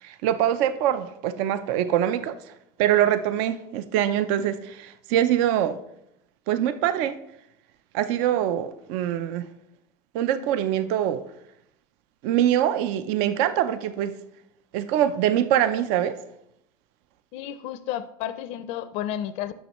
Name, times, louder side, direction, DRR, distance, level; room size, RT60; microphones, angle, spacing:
voice 1, 0.0-2.4 2.8-5.8 6.5-7.1 7.9-9.5 10.1-11.2 12.2-14.1 14.7-16.1, right 11 dB, 70° right, 11 dB, 0.5 m, -24 dB
voice 2, 17.3-19.5, left 11 dB, 65° left, 13 dB, 0.5 m, -32 dB
9.9 x 6.4 x 3.0 m, 0.79 s
supercardioid pair, 125°, 12 cm